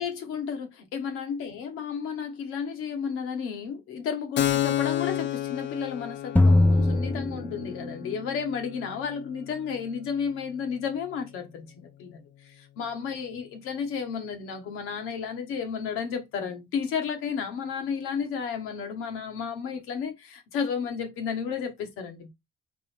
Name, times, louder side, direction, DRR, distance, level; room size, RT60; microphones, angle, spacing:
voice 1, 0.0-12.2 12.6-22.3, left 6 dB, 90° left, 1.2 m, -32 dB
Keyboard (musical), 4.4-11.7, left 13 dB, 60° left, 0.6 m, -32 dB
sound 1, 6.4-8.1, left 2 dB, 10° left, 0.6 m, -21 dB
3.9 x 3.1 x 4.2 m
supercardioid pair, 65°, 21 cm